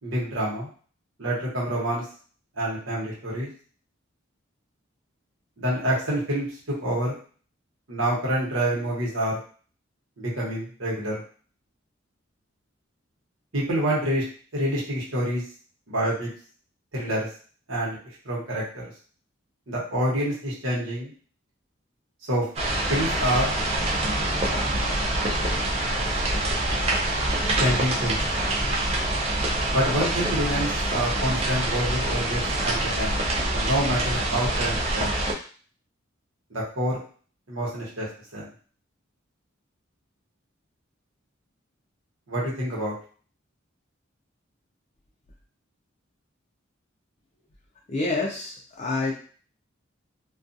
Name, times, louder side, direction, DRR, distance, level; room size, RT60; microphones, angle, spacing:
voice 1, 0.0-0.7 1.2-2.0 2.6-3.5 5.6-6.5 6.8-7.1 7.9-9.4 10.2-11.2 13.5-14.2 14.5-15.4 15.9-16.3 16.9-17.3 17.7-18.0 18.2-18.8 19.7-21.1 22.3-22.5 22.9-23.5 27.6-28.2 29.7-33.2 33.5-35.2 36.5-37.0 37.5-38.1 38.3-38.5 42.3-42.9, right 1 dB, 85° right, -5 dB, 1.1 m, -27 dB
sound 1, 22.6-35.3, right 1 dB, 30° right, 0.4 m, -25 dB
voice 2, 47.9-49.1, left 3 dB, 35° left, -3 dB, 0.4 m, -27 dB
2.4 x 2.3 x 2.6 m, 0.42 s
head